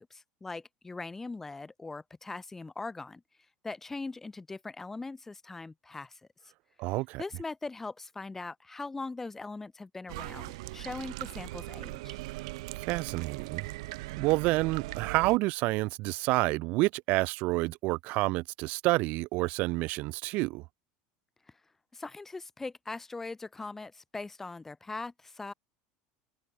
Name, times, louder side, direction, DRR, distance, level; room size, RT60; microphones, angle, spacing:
voice 1, 0.0-3.2 3.6-6.2 7.2-12.2 21.9-25.5, left 3 dB, 10° left, 2.8 m, -41 dB
voice 2, 6.8-7.2 12.9-13.7 14.1-20.6, right 22 dB, 55° right, 0.4 m, -28 dB
sound 1, 10.1-15.4, right 21 dB, 85° right, 2.8 m, -39 dB
cardioid pair, 150°, 3 cm